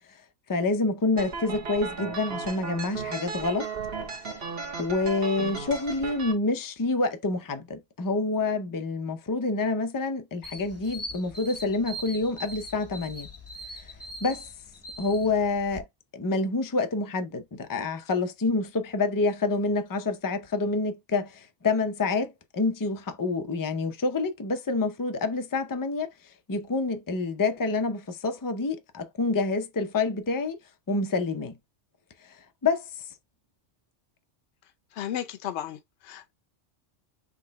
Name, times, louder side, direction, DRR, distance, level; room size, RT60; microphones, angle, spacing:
voice 1, 0.5-3.7 4.8-13.3 14.2-14.5 15.0-15.8 16.1-26.1 26.5-30.6 30.9-31.6 32.6-33.0, left 3 dB, 30° left, 0.4 m, -27 dB
sound 1, 1.2-6.3, right 5 dB, 55° right, 1.3 m, -35 dB
sound 2, 10.4-15.8, equal, 15° left, 0.7 m, -41 dB
voice 2, 34.9-36.4, left 10 dB, 65° left, 0.9 m, -34 dB
3.7 x 3.2 x 4.0 m
omnidirectional pair, 1.3 m